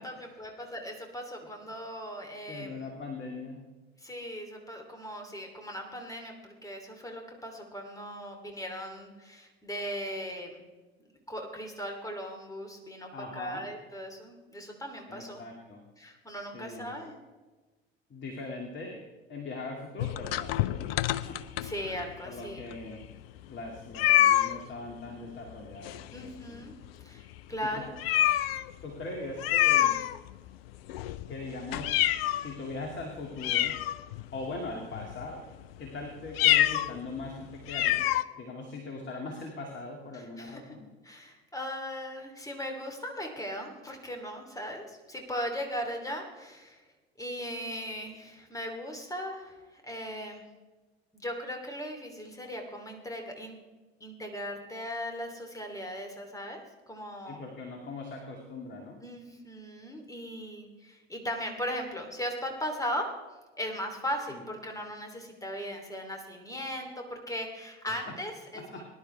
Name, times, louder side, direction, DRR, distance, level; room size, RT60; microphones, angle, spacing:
voice 1, 0.0-2.9 4.0-10.6 11.3-15.4 16.0-17.1 21.6-22.6 26.1-26.7 27.0-27.9 40.1-40.6 41.0-46.8 47.2-50.4 51.1-53.6 54.0-56.6 56.9-57.4 59.0-63.1 63.6-68.9, equal, 10° left, 3 dB, 3.2 m, -38 dB
voice 2, 2.5-3.6 13.1-13.6 15.1-15.8 16.5-17.0 18.1-19.0 19.3-21.6 22.3-23.0 23.5-26.6 27.7-27.8 28.8-30.0 31.3-32.0 32.4-33.7 34.3-35.4 35.8-38.0 38.4-40.9 57.3-58.9 64.3-64.4 68.7-68.9, left 3 dB, 35° left, 1 dB, 2.4 m, -40 dB
sound 1, 20.0-22.1 22.7-22.8 23.0-23.1 23.9-24.6 25.8-26.4 26.7-26.9 27.3-27.4 28.0-28.7 29.4-30.5 30.9-32.5 33.0-33.1 33.4-34.4 34.9-35.3 36.3-36.9 37.2-37.3 37.7-38.2, left 13 dB, 65° left, 0.6 m, -26 dB
20.5 x 11.0 x 3.4 m, 1.2 s
figure-of-eight pair, 65°, 33 cm